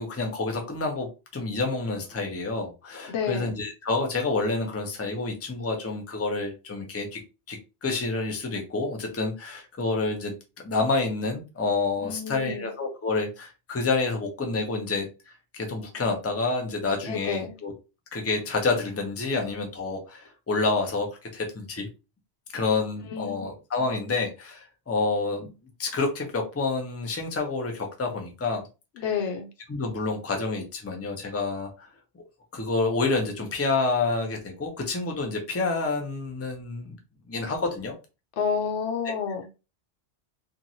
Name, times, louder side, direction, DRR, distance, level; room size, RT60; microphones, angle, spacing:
voice 1, 0.0-7.2 7.5-15.1 15.5-17.7 18.1-21.1 21.3-21.9 22.5-25.5 25.8-28.6 29.7-31.9 32.5-36.9 37.3-37.9, left 3 dB, 20° left, 2 dB, 0.5 m, -28 dB
voice 2, 3.1-3.5 12.0-12.7 17.0-17.5 23.1-23.5 29.0-29.5 38.4-39.4, left 6 dB, 85° left, 6 dB, 1.0 m, -29 dB
2.9 x 2.5 x 2.7 m, 0.29 s
omnidirectional pair, 1.1 m